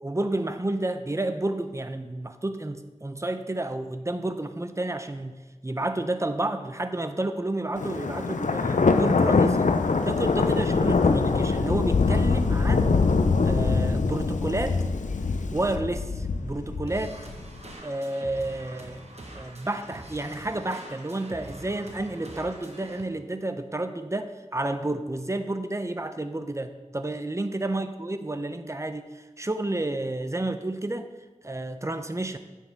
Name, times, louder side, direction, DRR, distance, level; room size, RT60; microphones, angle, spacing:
voice 1, 0.0-9.7 10.0-13.0 13.4-14.8 15.5-17.2 17.8-19.0 19.3-31.1 31.4-32.4, right 2 dB, 25° right, 9 dB, 0.6 m, -30 dB
Thunder, 7.8-17.6, left 4 dB, 85° left, 0.4 m, -23 dB
sound 1, 16.9-23.0, right 1 dB, 60° right, 1.1 m, -44 dB
9.2 x 7.4 x 3.5 m, 1.2 s
wide cardioid pair, 45°, 12 cm